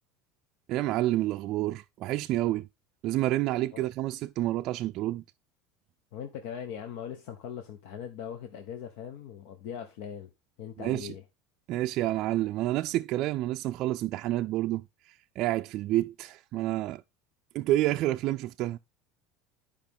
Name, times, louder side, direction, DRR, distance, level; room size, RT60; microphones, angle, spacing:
voice 1, 0.7-2.7 3.0-5.2 10.8-11.2 11.7-17.0 17.5-18.8, right 15 dB, 50° right, 0.3 m, -29 dB
voice 2, 6.1-10.3 10.6-11.2, left 8 dB, 70° left, 1.0 m, -40 dB
10.5 x 5.1 x 3.6 m
supercardioid pair, 135°, 0 cm